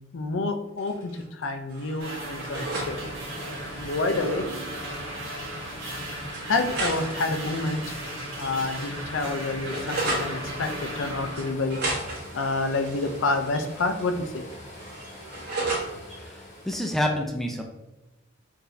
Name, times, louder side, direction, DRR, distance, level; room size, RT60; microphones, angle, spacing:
voice 1, 0.1-3.0 3.8-4.5 6.5-8.0 8.4-11.8 12.3-14.4, left 3 dB, 70° left, 7 dB, 0.4 m, -28 dB
sound 1, 0.8-1.4 1.7-2.9 3.2-3.7 4.8-4.9 5.2-5.3 6.3-8.5 8.8-10.3 11.3-14.1 14.4-15.9, right 2 dB, 55° right, 1.4 m, -34 dB
sound 2, 2.0-11.5, right 1 dB, 80° right, 1.4 m, -36 dB
sound 3, 2.4-16.7, left 1 dB, 35° left, 0.9 m, -44 dB
voice 2, 16.6-17.6, left 1 dB, ahead, 1 dB, 0.4 m, -27 dB
4.6 x 2.7 x 3.2 m, 1.0 s
head